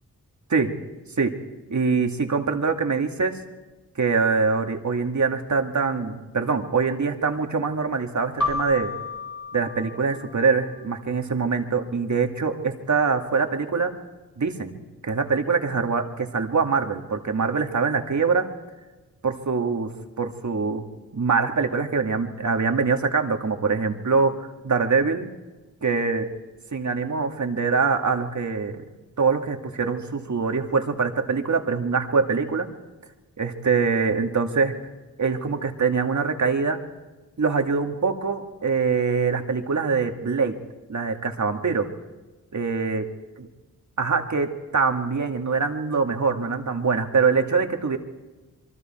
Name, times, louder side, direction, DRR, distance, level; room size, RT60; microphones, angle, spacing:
voice 1, 1.7-3.4 4.0-8.9 9.5-13.9 14.4-14.8 15.0-18.5 19.2-19.9 20.2-20.8 21.1-25.3 25.8-26.3 26.7-28.8 29.2-32.7 33.4-34.8 35.2-36.8 37.4-40.6 40.9-41.9 42.5-43.0 44.0-48.0, right 5 dB, 55° right, 4 dB, 2.3 m, -24 dB
Keyboard (musical), 8.4-10.9, left 3 dB, 55° left, 4.6 m, -32 dB
27.0 x 23.0 x 4.5 m, 1.2 s
cardioid pair, 65°, 35 cm